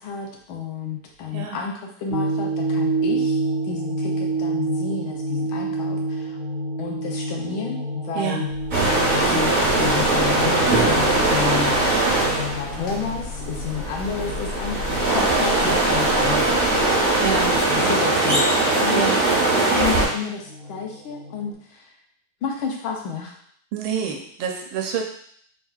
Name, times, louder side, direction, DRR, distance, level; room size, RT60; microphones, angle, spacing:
voice 1, 0.0-3.4 3.6-6.4 6.8-8.5 9.1-12.0 12.3-16.6 17.7-18.5 18.8-19.1 19.8-21.9 22.4-23.3, left 6 dB, 85° left, 0 dB, 1.6 m, -31 dB
sound 1, 2.1-21.5, right 2 dB, 5° right, 1.5 m, -30 dB
sound 2, 8.5-17.8, left 4 dB, 50° left, 1.4 m, -36 dB
sound 3, 8.7-20.1, right 2 dB, 30° right, 0.8 m, -20 dB
voice 2, 17.1-18.0 18.9-19.1 23.7-25.0, right 7 dB, 80° right, 2 dB, 1.5 m, -27 dB
4.5 x 3.7 x 2.3 m, 0.62 s
omnidirectional pair, 2.2 m